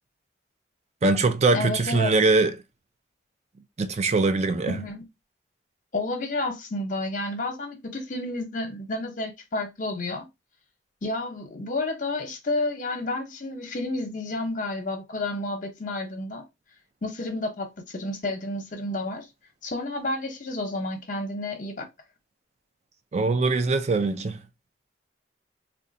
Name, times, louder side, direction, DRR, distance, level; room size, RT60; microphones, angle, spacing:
voice 1, 1.0-2.5 3.8-4.8 23.1-24.4, right 3 dB, 40° right, 0.4 m, -22 dB
voice 2, 1.5-2.1 4.7-5.0 5.9-10.3 11.0-16.5 17.0-19.3 19.6-21.9, left 2 dB, 50° left, 0.8 m, -30 dB
3.7 x 2.3 x 2.6 m
head